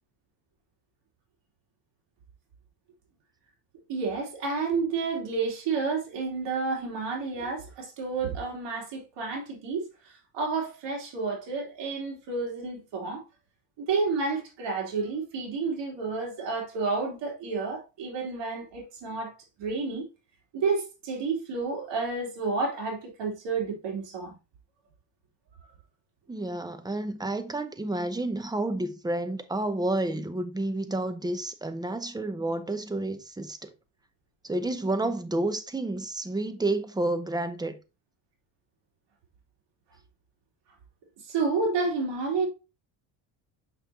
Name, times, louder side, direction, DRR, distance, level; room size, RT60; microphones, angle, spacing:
voice 1, 3.9-13.2 13.8-20.1 20.5-24.3 41.2-42.5, right 4 dB, 65° right, 3.2 m, -30 dB
voice 2, 26.3-33.7 34.4-37.8, right 2 dB, 10° right, 0.8 m, -30 dB
6.5 x 5.7 x 2.8 m
cardioid pair, 110°, 46 cm